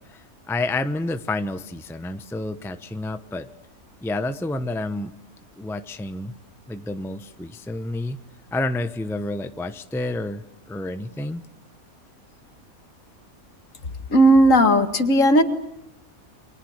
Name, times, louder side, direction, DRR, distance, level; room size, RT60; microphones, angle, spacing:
voice 1, 0.0-3.5 4.0-5.1 5.6-6.4 6.7-8.2 8.5-11.4, left 2 dB, ahead, 10 dB, 0.8 m, -29 dB
voice 2, 14.1-15.4, right 1 dB, 60° left, 8 dB, 2.4 m, -15 dB
29.5 x 24.5 x 6.6 m, 0.77 s
omnidirectional pair, 1.5 m